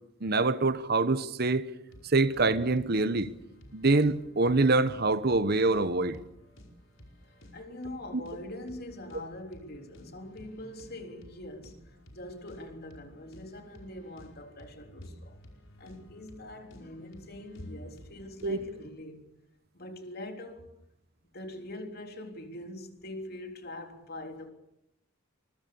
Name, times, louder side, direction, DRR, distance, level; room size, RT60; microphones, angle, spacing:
voice 1, 0.2-1.7 2.0-3.3 3.7-6.2 8.1-8.2 18.4-18.6, right 3 dB, 50° right, 1.0 m, -25 dB
sound 1, 1.9-18.8, equal, 75° left, 5.1 m, -54 dB
voice 2, 7.5-15.4 15.8-19.3 19.7-20.7 21.3-24.5, left 1 dB, 50° left, 3.6 m, -43 dB
24.5 x 22.0 x 7.0 m
head